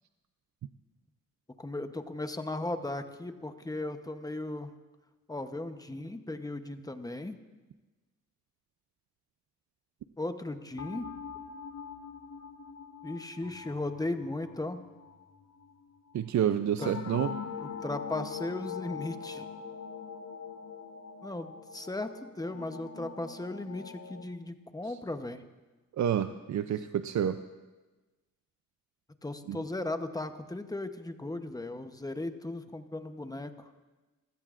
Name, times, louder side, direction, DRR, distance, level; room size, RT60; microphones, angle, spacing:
voice 1, 1.6-4.7 5.3-7.4 10.2-11.1 13.0-14.8 16.8-17.3 17.6-19.5 21.2-25.4 29.2-33.7, left 2 dB, 10° left, 8 dB, 0.9 m, -37 dB
sound 1, 10.8-16.1 16.8-24.2, left 6 dB, 55° left, 1.2 m, -43 dB
voice 2, 16.1-17.3 24.8-25.0 26.0-27.4 29.5-29.6, right 9 dB, 65° right, 9 dB, 0.5 m, -29 dB
25.5 x 16.5 x 2.5 m, 1.2 s
cardioid pair, 100°, 31 cm